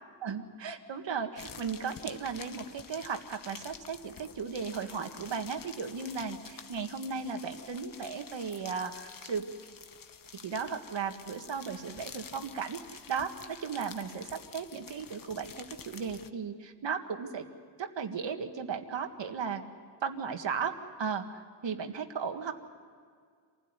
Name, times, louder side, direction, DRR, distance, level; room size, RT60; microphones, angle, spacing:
voice 1, 0.2-9.5 10.4-12.8 13.1-15.5 15.9-17.5 17.8-19.6 20.0-22.5, right 6 dB, 70° right, 6 dB, 1.9 m, -36 dB
sound 1, 1.4-16.3, left 6 dB, 45° left, 1.0 m, -49 dB
27.0 x 16.0 x 9.8 m, 2.1 s
wide cardioid pair, 135°, 46 cm